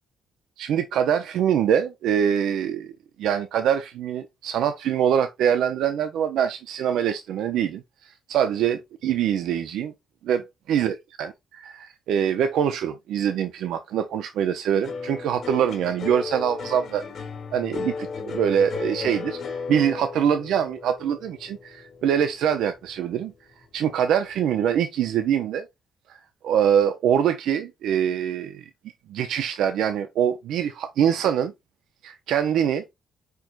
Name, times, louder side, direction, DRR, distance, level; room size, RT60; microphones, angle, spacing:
voice 1, 0.6-2.9 3.2-9.9 10.2-10.4 10.7-17.2 17.5-19.4 19.7-23.3 23.7-25.7 26.1-28.6 29.1-31.5 32.0-32.8, right 9 dB, 80° right, 0.5 m, -24 dB
sound 1, 14.8-23.3 23.6-24.3, left 5 dB, 65° left, 1.6 m, -35 dB
4.6 x 4.4 x 2.4 m
cardioid pair, 90°, 0 cm